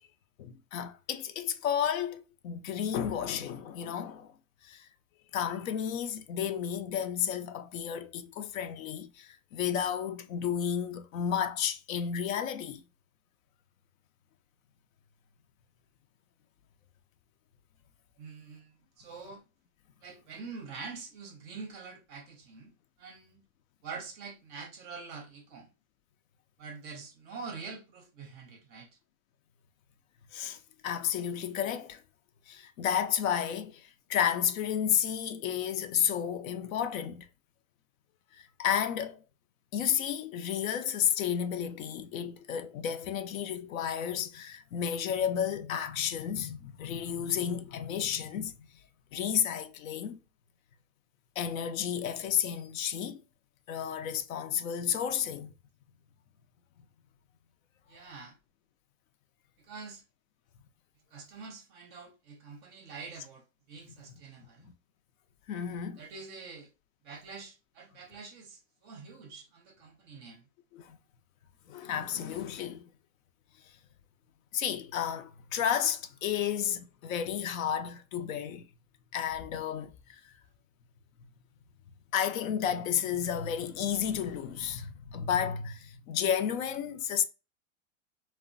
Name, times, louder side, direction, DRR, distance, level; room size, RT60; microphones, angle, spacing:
voice 1, 0.4-4.3 4.6-4.9 5.3-12.8 30.3-30.6 30.8-32.0 32.5-37.3 38.3-39.2 39.7-48.5 49.1-50.2 51.4-53.2 53.7-55.5 63.9-64.0 65.5-66.0 70.7-71.0 71.7-72.8 74.5-78.6 79.1-79.9 82.1-87.2, left 9 dB, 75° left, 0.6 m, -32 dB
voice 2, 18.2-19.4 20.0-22.7 23.0-23.4 23.8-25.7 26.6-28.9 57.9-58.4 59.6-60.0 61.1-64.7 66.0-66.7 67.0-70.4, right 4 dB, 25° right, 0.5 m, -45 dB
3.0 x 2.1 x 2.5 m
supercardioid pair, 150°, 40 cm